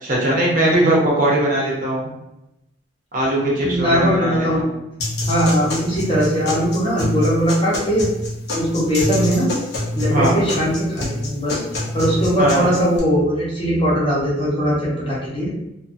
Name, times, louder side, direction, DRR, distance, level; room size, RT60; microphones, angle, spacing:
voice 1, 0.0-2.1 3.1-4.6 10.1-10.4 12.4-12.7, right 1 dB, 45° right, -4 dB, 0.7 m, -19 dB
voice 2, 3.6-4.7 5.3-8.1 8.5-9.5 9.9-11.6 11.9-15.5, equal, 30° left, -7 dB, 0.9 m, -20 dB
sound 1, 5.0-13.0, left 1 dB, 60° left, 0.8 m, -25 dB
2.6 x 2.6 x 2.5 m, 0.89 s
head